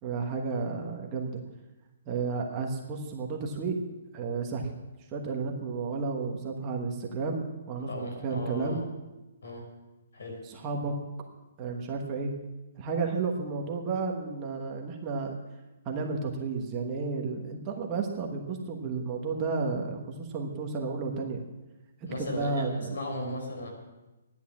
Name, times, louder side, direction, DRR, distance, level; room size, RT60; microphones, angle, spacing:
voice 1, 0.0-1.3 2.1-3.8 4.1-4.7 5.1-7.9 8.2-8.8 10.4-10.9 11.6-12.3 12.8-15.3 15.8-21.4 22.2-22.9, right 4 dB, 15° right, 0 dB, 1.2 m, -32 dB
voice 2, 7.9-8.8 9.4-9.6 10.1-10.4 22.1-23.7, left 1 dB, 70° left, 2 dB, 5.5 m, -36 dB
14.0 x 10.5 x 7.3 m, 1.1 s
hypercardioid pair, 180°, 0 cm